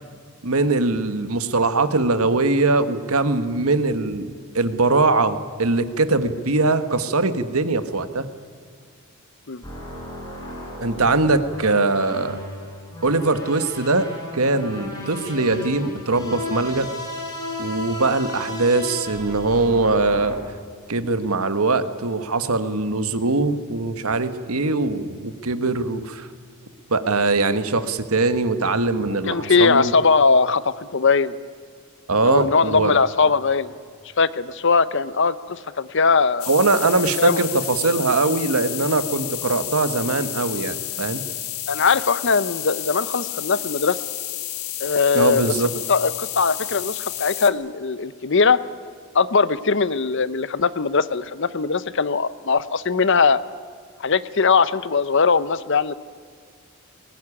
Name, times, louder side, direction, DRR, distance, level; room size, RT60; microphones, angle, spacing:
voice 1, 0.4-4.3 4.5-8.3 10.8-12.4 13.0-16.9 17.6-20.4 20.9-26.3 26.9-29.9 32.1-33.0 36.5-41.2 45.1-45.7, right 3 dB, 80° right, 10 dB, 1.5 m, -21 dB
sound 1, 9.6-20.4, left 1 dB, 20° left, 5.2 m, -34 dB
voice 2, 29.2-31.3 32.3-33.7 34.2-36.5 37.2-37.4 41.7-44.0 44.8-45.5 45.9-48.6 49.1-53.4 54.0-55.9, left 5 dB, 55° left, 16 dB, 0.8 m, -20 dB
sound 2, 36.4-47.5, left 13 dB, 85° left, 1.6 m, -31 dB
21.0 x 19.0 x 9.9 m, 2.1 s
head